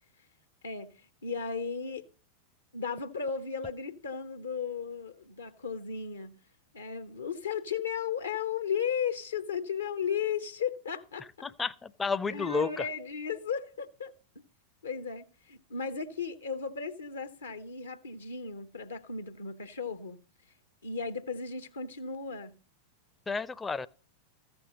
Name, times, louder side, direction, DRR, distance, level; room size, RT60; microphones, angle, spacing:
voice 1, 0.6-2.1 2.7-6.4 6.7-11.3 12.3-14.1 14.8-20.2 20.8-22.5, left 6 dB, 75° left, 0.7 m, -35 dB
voice 2, 11.4-12.8 23.3-23.9, left 4 dB, 15° left, 0.5 m, -31 dB
14.5 x 6.2 x 5.0 m
figure-of-eight pair, 90°, 0 cm